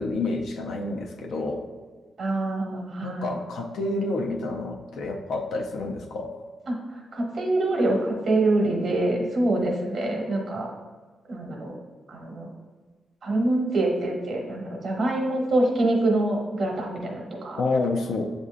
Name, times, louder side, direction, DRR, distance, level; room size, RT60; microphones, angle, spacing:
voice 1, 0.0-1.7 3.0-6.4 17.6-18.3, left 2 dB, 80° left, 2 dB, 0.4 m, -29 dB
voice 2, 2.2-3.3 6.7-6.8 7.1-10.7 11.3-11.7 12.1-12.5 13.2-17.6, right 2 dB, 60° right, 0 dB, 1.0 m, -25 dB
7.2 x 2.6 x 2.4 m, 1.4 s
cardioid pair, 85°, 0 cm